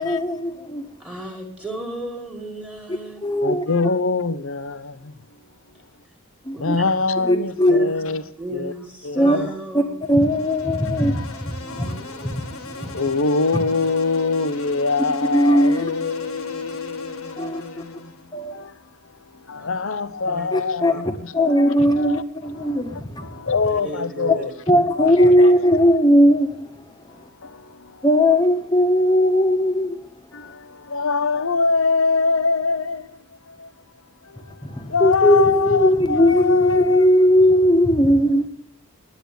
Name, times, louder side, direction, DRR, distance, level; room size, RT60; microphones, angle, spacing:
voice 1, 0.0-0.8 3.2-3.6 6.5-6.7 7.3-7.9 9.1-9.4 9.7-9.8 10.1-12.4 12.6-12.9 15.3-15.9 17.4-17.6 18.3-18.5 20.5-20.9 21.3-23.3 24.7-26.6 28.0-30.0 35.0-38.5, equal, 20° left, 1.5 m, -18 dB
voice 2, 1.0-3.2 6.5-6.8 7.2-8.0 8.4-9.9 19.6-19.7 20.2-20.5 20.9-21.0 23.7-24.9, right 1 dB, 5° right, 2.2 m, -34 dB
voice 3, 3.4-5.1 6.6-8.2 8.5-8.7 9.0-9.5 11.0-11.3 11.7-12.1 12.9-24.5 25.0-25.7 27.1-28.3 30.3-33.7 34.2-37.2, left 4 dB, 65° left, 0.8 m, -25 dB
Insect, 10.1-18.3, left 2 dB, 80° left, 2.0 m, -39 dB
10.5 x 9.8 x 9.4 m
head